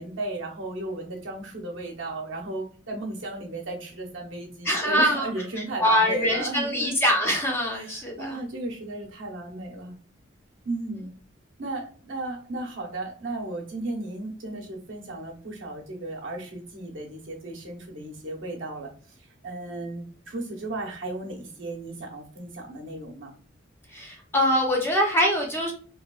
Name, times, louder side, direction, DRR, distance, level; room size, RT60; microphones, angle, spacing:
voice 1, 0.0-7.0 7.8-9.9 10.6-11.1 11.6-18.9 19.4-23.3, right 2 dB, 75° right, 0 dB, 0.8 m, -35 dB
voice 2, 4.6-5.3 5.8-8.4 23.9-25.7, equal, 10° left, -1 dB, 0.6 m, -23 dB
3.0 x 2.3 x 2.3 m, 0.40 s
head